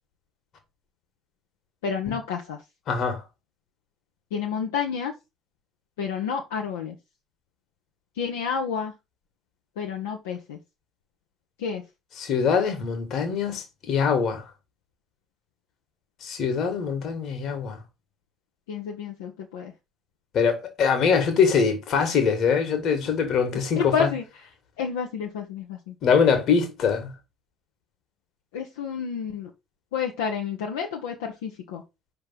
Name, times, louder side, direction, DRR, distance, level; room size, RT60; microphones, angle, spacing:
voice 1, 1.8-2.6 4.3-5.1 6.0-6.9 8.2-8.9 9.8-10.6 11.6-11.8 18.7-19.7 23.8-24.2 24.8-25.8 28.5-29.5 29.9-31.8, left 6 dB, 70° left, 0.8 m, -29 dB
voice 2, 2.9-3.2 12.1-14.4 16.2-17.8 20.3-24.1 26.0-27.1, left 6 dB, 50° left, 1.7 m, -23 dB
5.4 x 3.4 x 5.7 m
figure-of-eight pair, 55°, 0 cm